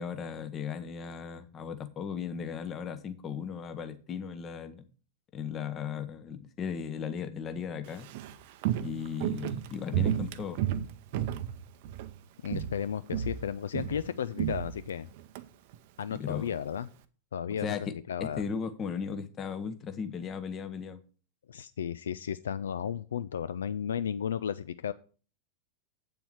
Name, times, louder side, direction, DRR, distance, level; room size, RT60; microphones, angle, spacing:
voice 1, 0.0-4.8 5.3-8.1 8.8-10.6 16.1-16.5 17.6-17.9 18.2-21.0, left 6 dB, 25° left, 1.0 m, -36 dB
Walk footsteps, 7.9-12.2 12.4-12.8 13.1-15.4 15.7-15.8, right 11 dB, 50° right, 0.6 m, -32 dB
voice 2, 12.4-15.1 16.0-16.9 17.3-18.4 21.5-24.9, left 8 dB, 65° left, 0.3 m, -34 dB
8.4 x 7.0 x 4.7 m
figure-of-eight pair, 90°, 0 cm